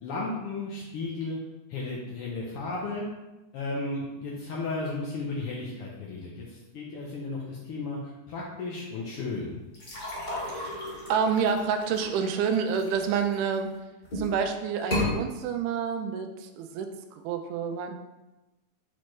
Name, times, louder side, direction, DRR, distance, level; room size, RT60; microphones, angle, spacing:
voice 1, 0.0-1.4 1.7-3.1 3.5-9.6, left 3 dB, 75° left, -4 dB, 1.3 m, -34 dB
sound 1, 9.7-13.6 14.0-14.4 14.8-15.1, left 1 dB, 35° left, 2.1 m, -33 dB
voice 2, 10.5-13.7 14.2-17.9, right 6 dB, 85° right, 6 dB, 2.2 m, -28 dB
8.3 x 4.4 x 3.2 m, 1.0 s
omnidirectional pair, 3.7 m